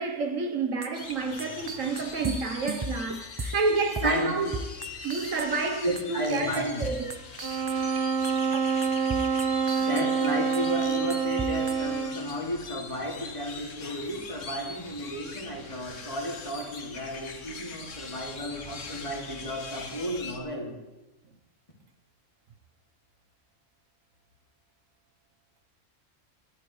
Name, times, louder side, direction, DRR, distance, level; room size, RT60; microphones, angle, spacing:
voice 1, 0.0-4.5 5.0-7.1, right 4 dB, 85° right, 1.6 m, -29 dB
sound 1, 0.8-3.7 4.0-4.3 4.5-5.7 6.0-8.0 8.2-10.3 10.5-11.7, right 2 dB, 25° right, 0.6 m, -35 dB
sound 2, 0.9-20.4, left 4 dB, 75° left, 1.7 m, -42 dB
voice 2, 4.0-4.4 5.8-6.9 9.8-20.8, equal, 25° left, 2.8 m, -33 dB
sound 3, 7.4-12.3, right 6 dB, 50° right, 1.3 m, -27 dB
21.0 x 12.0 x 3.3 m
omnidirectional pair, 1.3 m